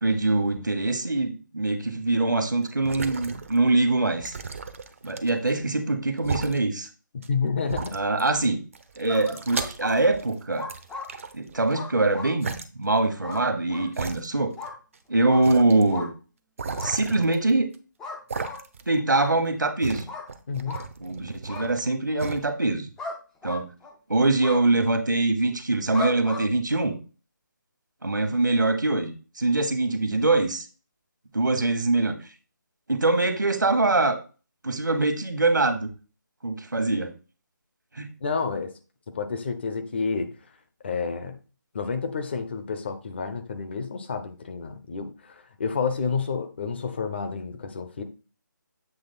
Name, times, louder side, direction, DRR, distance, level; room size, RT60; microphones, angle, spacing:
voice 1, 0.0-4.3 5.0-6.9 7.9-8.6 9.0-10.7 11.3-14.5 15.1-16.1 16.8-17.7 18.9-20.1 21.0-22.9 23.4-23.7 24.1-27.0 28.0-30.7 31.3-32.1 32.9-34.2 34.6-35.9 36.4-37.1 38.0-38.1, right 2 dB, 70° right, 8 dB, 1.2 m, -23 dB
sound 1, 2.6-3.7 4.2-5.5 6.2-6.6 7.2-7.3 7.7-8.4 8.7-10.3 10.7-11.7 12.4-12.6 13.3-13.4 13.9-14.7 14.9-15.0 15.4-15.8 16.6-17.7 18.3-18.9 19.3-21.9 22.2-22.4, right 4 dB, 40° right, 0.6 m, -35 dB
voice 2, 7.3-7.9 20.5-20.8 38.2-38.7 39.1-40.3 40.8-41.4 41.7-48.0, left 5 dB, 35° left, 8 dB, 0.7 m, -29 dB
sound 2, 9.1-9.9 10.6-11.1 11.7-12.3 13.2-13.4 13.7-13.9 14.6-14.7 15.3-15.4 15.9-16.1 16.8-16.9 18.0-18.6 19.1-19.3 20.1-20.3 20.7-20.8 21.5-21.7 23.0-23.2 23.4-23.9 24.4-24.6 25.9-26.4, left 3 dB, 5° left, 0.4 m, -35 dB
7.8 x 3.1 x 4.2 m, 0.33 s
figure-of-eight pair, 150°, 11 cm